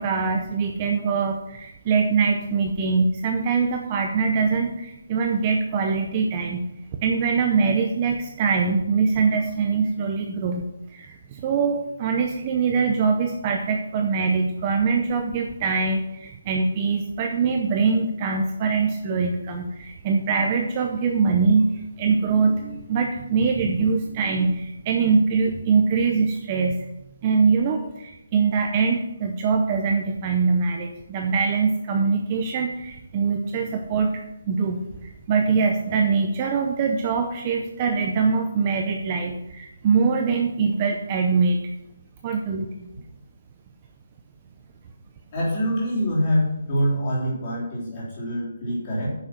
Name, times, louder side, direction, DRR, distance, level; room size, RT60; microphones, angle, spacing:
voice 1, 0.0-6.7 7.0-10.6 10.9-26.8 27.2-41.6 42.2-42.9, right 5 dB, 20° right, 3 dB, 0.6 m, -23 dB
voice 2, 45.3-49.1, equal, 25° left, -6 dB, 3.5 m, -25 dB
9.3 x 6.4 x 6.0 m, 0.85 s
hypercardioid pair, 175°, 0 cm